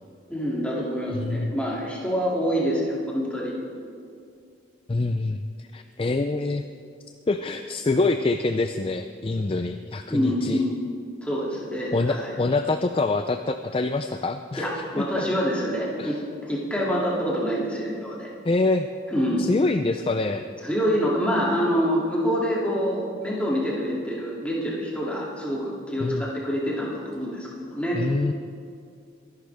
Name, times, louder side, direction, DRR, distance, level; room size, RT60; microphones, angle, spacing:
voice 1, 0.3-3.5 10.1-10.8 11.2-12.4 14.6-18.3 19.1-19.5 20.6-28.0, equal, 5° left, -5 dB, 2.6 m, -26 dB
voice 2, 1.1-1.5 4.9-6.6 7.3-10.6 11.9-14.7 15.0-15.2 16.0-16.2 18.4-18.9 19.4-20.5 26.0-26.3 27.9-28.3, left 3 dB, 30° left, 8 dB, 0.4 m, -25 dB
23.5 x 11.5 x 3.5 m, 2.4 s
head